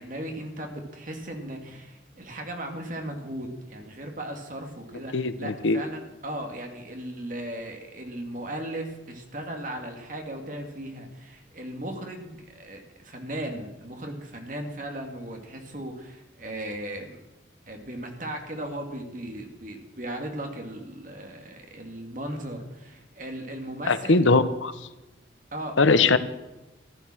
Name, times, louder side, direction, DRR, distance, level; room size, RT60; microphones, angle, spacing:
voice 1, 0.0-17.2 17.7-24.2 25.5-26.1, right 1 dB, 45° right, 3 dB, 2.3 m, -37 dB
voice 2, 5.1-5.8 23.9-24.7 25.8-26.2, left 3 dB, 85° left, 12 dB, 1.0 m, -20 dB
14.5 x 12.0 x 6.2 m, 1.0 s
head